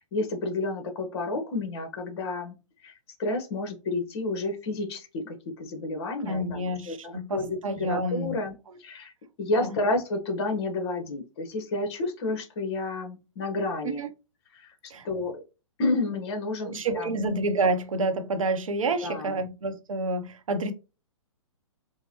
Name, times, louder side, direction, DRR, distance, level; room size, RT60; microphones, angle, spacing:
voice 1, 0.1-2.6 2.8-2.9 3.2-8.5 8.8-9.1 9.4-14.0 14.5-14.7 15.0-15.4 15.8-17.1 19.0-19.4, left 2 dB, 50° left, 1.2 m, -30 dB
voice 2, 6.3-8.4 8.7-8.8 9.6-9.8 13.8-14.1 14.9-15.1 16.6-20.7, right 2 dB, 75° right, 0.8 m, -29 dB
4.5 x 2.2 x 2.9 m
hypercardioid pair, 125°, 17 cm